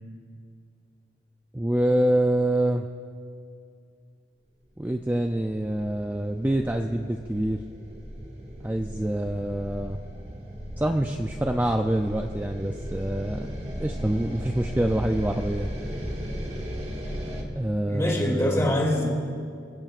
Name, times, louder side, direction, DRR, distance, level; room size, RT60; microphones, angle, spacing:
voice 1, 1.5-2.9 4.8-7.6 8.6-10.0 10.8-13.5 13.8-15.7 17.5-18.8, right 1 dB, 10° right, 4 dB, 0.4 m, -26 dB
sound 1, 4.9-17.4, equal, 35° right, 1.7 m, -36 dB
voice 2, 17.9-19.1, left 1 dB, 15° left, -1 dB, 2.5 m, -24 dB
27.0 x 15.5 x 2.5 m, 2.3 s
head